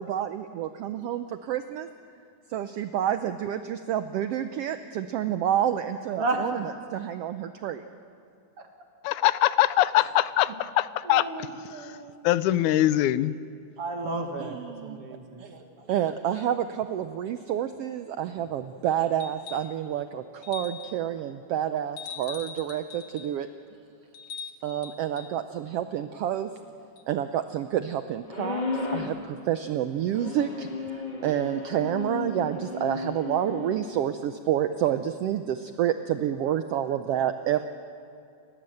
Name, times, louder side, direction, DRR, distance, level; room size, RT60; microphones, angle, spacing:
voice 1, 0.0-1.9 2.5-7.8 14.4-15.0 15.9-23.5 24.4-26.5 27.1-37.6, right 10 dB, 80° right, 10 dB, 1.3 m, -29 dB
voice 2, 6.1-6.6 10.0-10.1 11.0-12.2 13.8-15.9 36.8-36.9, right 2 dB, 50° right, 4 dB, 2.6 m, -33 dB
voice 3, 9.0-11.3 11.7-12.0 12.2-13.4, left 14 dB, 80° left, 15 dB, 2.1 m, -23 dB
sound 1, 19.2-19.8 20.4-21.0 22.0-23.4 24.1-25.3 27.0-27.1, left 7 dB, 55° left, 2.6 m, -41 dB
sound 2, 28.3-29.2 30.1-33.8, left 4 dB, 25° left, 1.1 m, -34 dB
29.5 x 15.0 x 7.8 m, 2.4 s
omnidirectional pair, 3.5 m